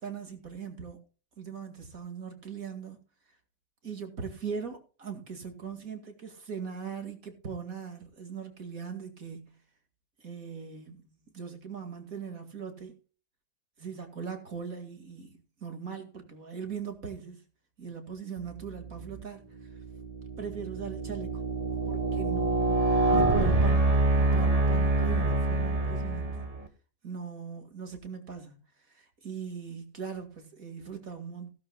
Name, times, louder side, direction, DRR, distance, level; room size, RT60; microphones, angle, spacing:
voice 1, 0.0-1.0 1.4-3.0 3.8-9.5 10.2-12.9 13.8-15.3 15.6-17.4 17.8-19.7 20.4-21.3 21.9-26.4 27.0-28.6 28.9-31.5, right 6 dB, 50° right, 2.6 m, -40 dB
sound 1, 18.9-19.2 19.8-26.7, right 2 dB, 20° right, 1.6 m, -26 dB
17.0 x 12.0 x 2.3 m
omnidirectional pair, 1.9 m